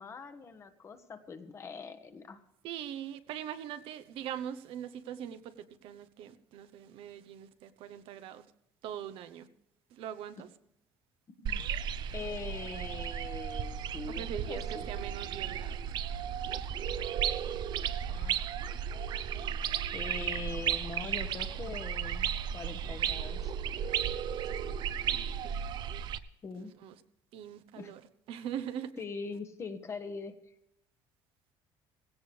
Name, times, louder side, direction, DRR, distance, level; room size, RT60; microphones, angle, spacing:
voice 1, 0.0-2.4 11.4-11.6 12.1-14.8 18.1-18.4 19.9-22.3 22.5-23.5 26.4-26.7 27.8-27.9 29.0-30.4, left 4 dB, 30° left, 1.3 m, -42 dB
voice 2, 2.6-5.5 5.8-8.5 8.8-9.5 9.9-10.5 14.1-15.8 25.0-25.6 26.6-27.0 27.3-28.0 28.3-28.9, right 10 dB, 65° right, 1.0 m, -42 dB
sound 1, 11.5-26.2, right 8 dB, 45° right, 0.7 m, -34 dB
17.0 x 17.0 x 3.4 m
cardioid pair, 145°, 10 cm